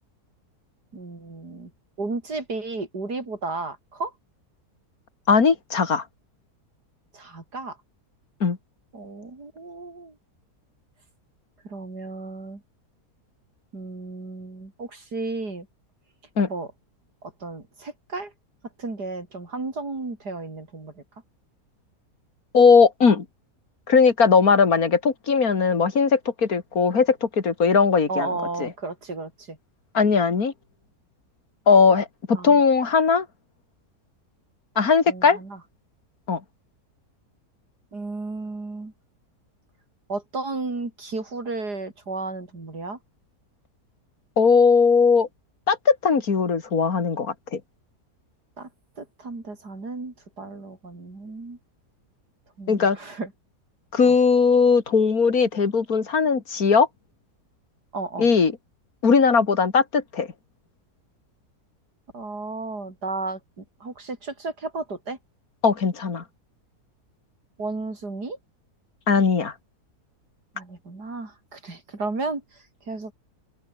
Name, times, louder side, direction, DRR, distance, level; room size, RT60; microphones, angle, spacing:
voice 1, 0.9-1.7 2.0-4.1 7.1-7.8 8.9-10.2 11.6-12.6 13.7-15.7 16.5-16.7 17.2-18.3 18.8-21.0 28.1-29.6 32.3-32.6 35.1-35.6 37.9-38.9 40.1-43.0 48.6-48.7 49.0-51.6 52.6-53.3 54.0-54.2 57.9-58.3 62.1-65.2 67.6-68.4 70.5-73.1, right 3 dB, 80° right, 5.2 m, -33 dB
voice 2, 5.3-6.0 8.4-8.6 16.4-16.5 22.5-23.2 23.9-28.3 28.6-28.7 29.9-30.5 31.7-33.3 34.8-35.4 36.3-36.4 44.4-45.3 45.7-47.6 52.7-53.0 53.9-56.9 58.2-58.5 59.0-60.3 65.6-66.2 69.1-69.5, left 5 dB, 65° left, 2.8 m, -19 dB
open air
omnidirectional pair, 1.7 m